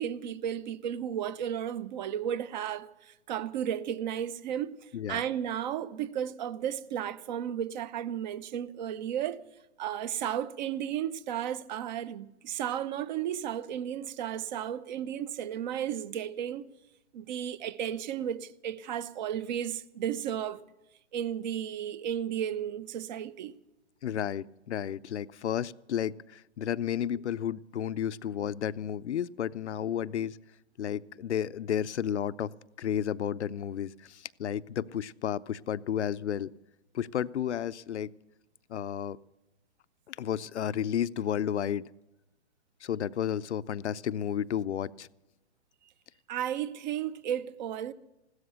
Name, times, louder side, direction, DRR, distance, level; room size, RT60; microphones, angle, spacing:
voice 1, 0.0-9.4 9.8-16.7 17.1-20.6 21.1-23.5 46.3-47.9, right 10 dB, 40° right, 0.8 m, -34 dB
voice 2, 24.0-30.4 30.8-32.5 32.8-36.5 36.9-38.1 38.7-39.2 40.1-41.8 42.8-45.1, left 9 dB, 75° left, 0.6 m, -32 dB
16.0 x 13.0 x 6.9 m
hypercardioid pair, 135°, 35 cm